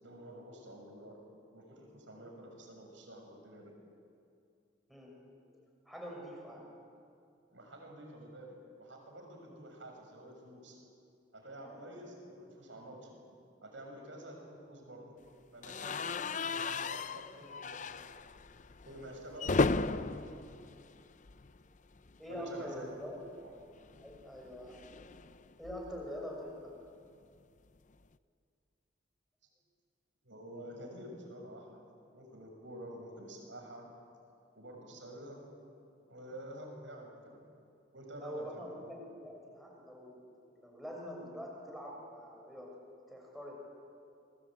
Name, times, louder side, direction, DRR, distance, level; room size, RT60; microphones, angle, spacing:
voice 1, 0.0-1.2 1.5-3.7 7.5-10.8 11.3-13.1 13.6-15.1 15.5-17.8 18.8-20.4 22.3-22.9 23.3-23.5 30.2-31.8 32.1-33.9 34.5-35.4 36.1-37.4 37.9-38.8, right 1 dB, 80° right, 2 dB, 6.6 m, -49 dB
voice 2, 4.9-6.7 11.6-11.9 18.8-19.0 22.2-23.2 24.0-24.8 25.6-26.7 38.2-42.8 43.1-43.7, equal, ahead, -2 dB, 6.6 m, -45 dB
sound 1, 15.6-21.7 22.0-22.2 22.4-22.5 23.8-26.1, left 3 dB, 40° left, 0.6 m, -36 dB
28.0 x 21.0 x 9.0 m, 2.4 s
head